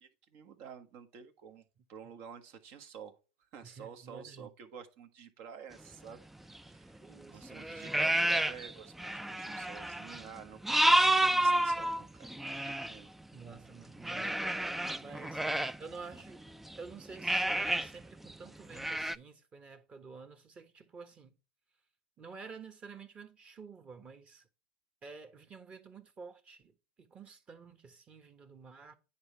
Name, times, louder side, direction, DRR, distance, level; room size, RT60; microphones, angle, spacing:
voice 1, 0.0-3.2 3.5-13.1 14.9-15.6, right 7 dB, 60° right, 1.4 m, -50 dB
voice 2, 3.6-4.5 7.0-7.6 12.5-12.6 13.3-14.4 15.0-15.4 15.8-16.4 16.8-21.3 22.2-24.5 25.0-29.0, right 5 dB, 30° right, 1.3 m, -50 dB
sound 1, 6.6-6.7 7.4-8.7 9.0-13.0 14.0-16.8 17.2-17.9 18.2-18.3 18.7-19.2, right 1 dB, 5° right, 0.3 m, -30 dB
9.6 x 4.2 x 3.3 m
supercardioid pair, 110°, 4 cm